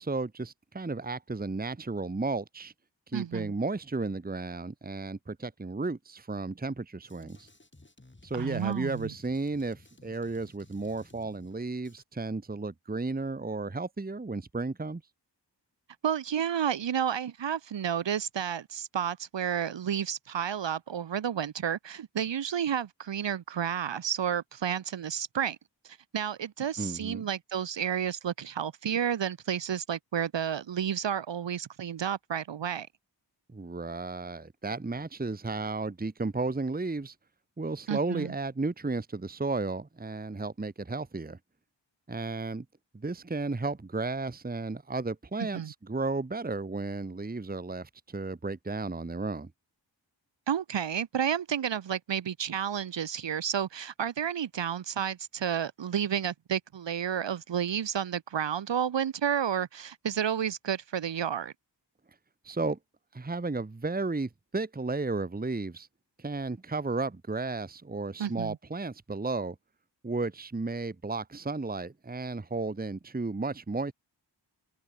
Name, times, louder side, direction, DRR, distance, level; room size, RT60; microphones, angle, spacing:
voice 1, 0.0-2.7 3.1-7.5 8.2-15.0 26.8-27.3 33.5-37.1 37.6-41.4 42.1-42.6 42.9-49.5 62.4-62.8 63.1-65.9 66.2-69.6 70.0-73.9, right 3 dB, 20° right, 1.1 m, -33 dB
voice 2, 3.1-3.5 8.3-9.1 16.0-25.6 25.8-32.9 37.9-38.3 45.5-45.7 50.5-61.5 68.2-68.6, right 8 dB, 75° right, 0.8 m, -31 dB
Drum kit, 7.0-12.0, left 2 dB, 25° left, 7.1 m, -57 dB
wide cardioid pair, 90°, 43 cm